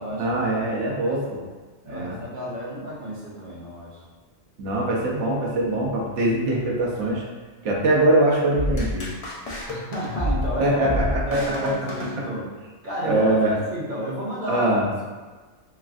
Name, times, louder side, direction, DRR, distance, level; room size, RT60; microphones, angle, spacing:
voice 1, 0.2-1.4 1.9-2.2 4.6-7.2 7.6-9.1 10.6-11.4 13.0-13.5 14.5-14.9, right 1 dB, 85° right, -4 dB, 1.0 m, -22 dB
voice 2, 1.8-4.0 9.7-11.0 11.3-12.5 12.8-14.7, equal, 50° right, -6 dB, 0.7 m, -31 dB
sound 1, 8.5-12.7, left 1 dB, 50° left, 0.4 m, -29 dB
3.2 x 2.4 x 2.3 m, 1.3 s
omnidirectional pair, 1.2 m